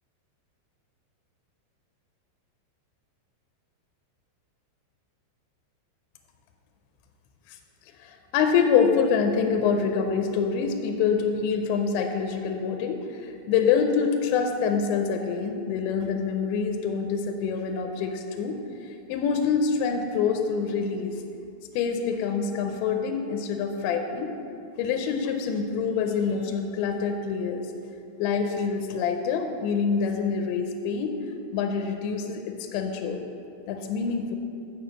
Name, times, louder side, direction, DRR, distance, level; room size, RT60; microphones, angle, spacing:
voice 1, 8.0-21.2 21.7-24.4 24.8-27.7 28.2-31.2 31.5-33.3 33.7-34.4, left 6 dB, 85° left, 4 dB, 2.8 m, -26 dB
6.9 x 6.8 x 7.8 m, 2.6 s
omnidirectional pair, 5.3 m